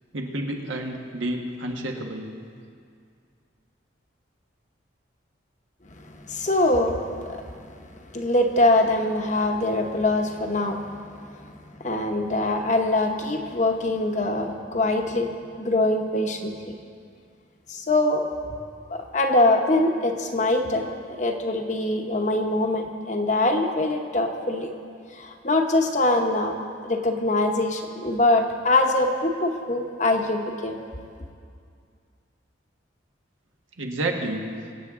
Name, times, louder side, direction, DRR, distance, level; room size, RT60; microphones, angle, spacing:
voice 1, 0.1-2.3 33.8-34.5, right 1 dB, 85° right, 2 dB, 1.4 m, -30 dB
voice 2, 5.9-10.9 11.1-16.7 17.7-18.3 18.9-20.9 21.2-24.7 25.1-26.5 26.8-30.8, left 2 dB, 40° left, 3 dB, 1.0 m, -23 dB
24.0 x 8.3 x 3.7 m, 2.3 s
head